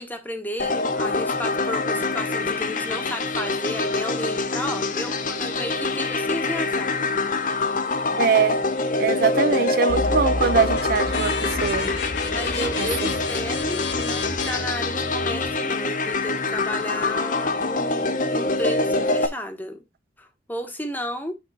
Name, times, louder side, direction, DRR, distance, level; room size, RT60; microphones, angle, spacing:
voice 1, 0.0-7.0 12.3-19.8 20.2-21.3, left 1 dB, 10° left, 1.1 m, -33 dB
sound 1, 0.6-19.3, left 3 dB, 45° left, 0.8 m, -25 dB
voice 2, 8.2-8.6 9.0-11.3 11.6-11.9 12.8-13.1, right 6 dB, 55° right, 0.5 m, -22 dB
sound 2, 9.9-15.5, left 3 dB, 90° left, 1.3 m, -30 dB
8.7 x 3.8 x 3.9 m
head